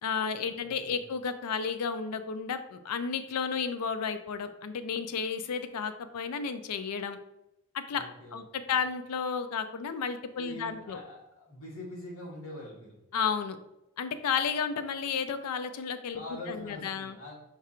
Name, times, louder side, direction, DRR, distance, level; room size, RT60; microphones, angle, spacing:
voice 1, 0.0-7.2 7.7-8.0 8.3-11.0 13.1-13.6 14.0-17.2, left 6 dB, 90° left, 10 dB, 0.4 m, -32 dB
voice 2, 7.9-8.4 8.7-8.8 10.3-12.9 16.1-17.4, left 1 dB, 70° left, -3 dB, 1.5 m, -44 dB
4.7 x 2.4 x 4.3 m, 0.90 s
head